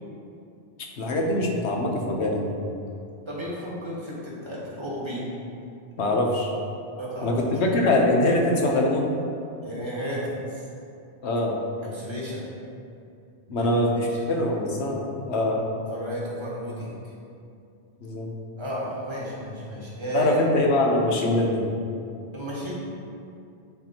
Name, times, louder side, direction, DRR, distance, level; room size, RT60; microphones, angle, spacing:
voice 1, 1.0-2.6 6.0-6.5 7.2-9.1 11.2-11.6 13.5-15.6 18.0-18.3 20.1-21.7, left 1 dB, 80° left, 0 dB, 1.1 m, -23 dB
voice 2, 3.3-5.3 7.0-7.4 9.6-10.7 11.8-12.4 13.5-14.3 15.9-16.9 18.6-20.4 22.3-22.7, right 1 dB, 25° right, -6 dB, 1.4 m, -33 dB
9.2 x 4.3 x 2.9 m, 2.5 s
omnidirectional pair, 1.1 m